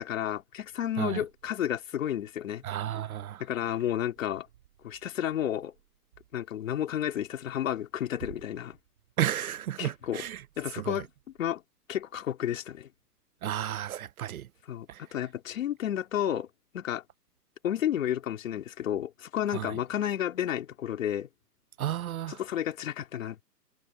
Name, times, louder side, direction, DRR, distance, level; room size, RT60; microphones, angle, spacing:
voice 1, 0.0-2.6 3.4-4.5 4.8-5.7 6.3-8.8 9.8-10.3 10.6-11.1 11.4-11.6 11.9-12.9 14.7-16.5 16.7-17.0 17.6-21.3 22.3-23.4, left 10 dB, 50° left, 3.5 m, -31 dB
voice 2, 2.6-3.4 9.2-10.4 10.8-11.0 13.4-14.5 14.9-15.0 19.5-19.7 21.8-22.4, right 11 dB, 60° right, 0.6 m, -32 dB
hypercardioid pair, 160°, 48 cm